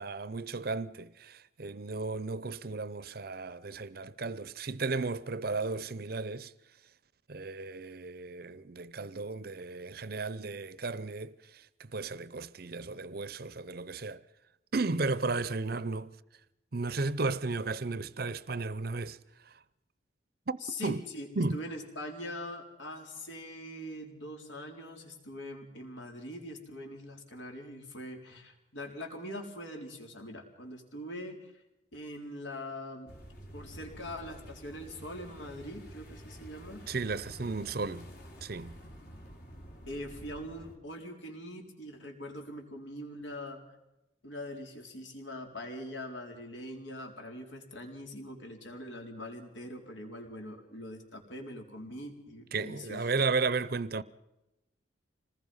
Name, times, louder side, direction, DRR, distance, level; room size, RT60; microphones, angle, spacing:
voice 1, 0.0-6.5 7.3-14.2 14.7-16.1 16.7-19.2 20.5-20.6 20.8-21.0 21.4-21.6 36.9-38.1 38.4-38.8 52.5-54.0, right 3 dB, 50° right, 0.7 m, -34 dB
voice 2, 20.6-31.6 31.9-33.1 33.5-37.0 39.9-43.6 44.2-53.1, left 1 dB, 75° left, 4.3 m, -43 dB
sound 1, 33.1-40.8, equal, 55° left, 3.4 m, -49 dB
26.0 x 19.5 x 5.6 m
head